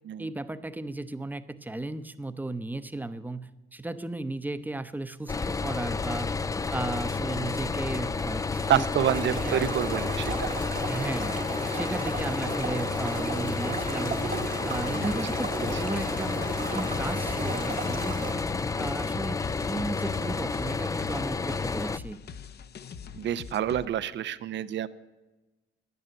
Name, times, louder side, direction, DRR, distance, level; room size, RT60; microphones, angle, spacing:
voice 1, 0.2-6.4 6.7-9.8 10.9-11.4 11.7-14.3 14.6-18.4 18.8-22.2, right 2 dB, 10° right, 12 dB, 0.7 m, -35 dB
sound 1, 5.3-22.0, left 4 dB, 15° left, 0.4 m, -30 dB
voice 2, 8.7-10.5 14.9-15.2 15.7-15.8 23.1-24.9, right 11 dB, 65° right, 15 dB, 0.7 m, -28 dB
sound 2, 9.0-18.3, right 5 dB, 45° right, 1.2 m, -36 dB
sound 3, 13.8-23.9, left 6 dB, 55° left, 0.7 m, -43 dB
10.5 x 9.4 x 8.8 m, 1.1 s
cardioid pair, 90°, 20 cm